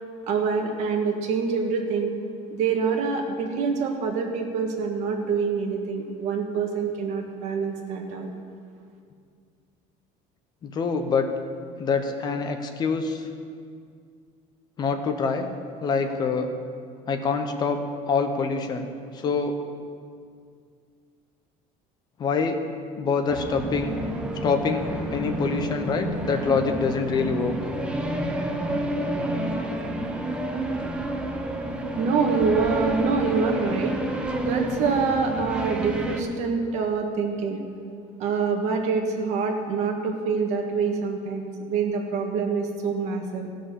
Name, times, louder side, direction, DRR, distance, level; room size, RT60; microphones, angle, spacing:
voice 1, 0.3-2.1 2.5-8.3 31.9-33.9 34.4-37.6 38.2-43.5, right 5 dB, 50° right, 3 dB, 1.5 m, -26 dB
voice 2, 10.6-11.3 11.8-13.3 14.8-15.5 15.8-16.5 17.1-17.8 18.1-18.9 19.1-19.6 22.2-22.6 23.0-23.9 24.3-24.8 25.1-27.5, left 5 dB, 25° left, 6 dB, 0.8 m, -25 dB
sound 1, 23.3-36.2, right 1 dB, 5° right, 0.6 m, -29 dB
15.5 x 6.4 x 7.0 m, 2.2 s
cardioid pair, 180°, 15 cm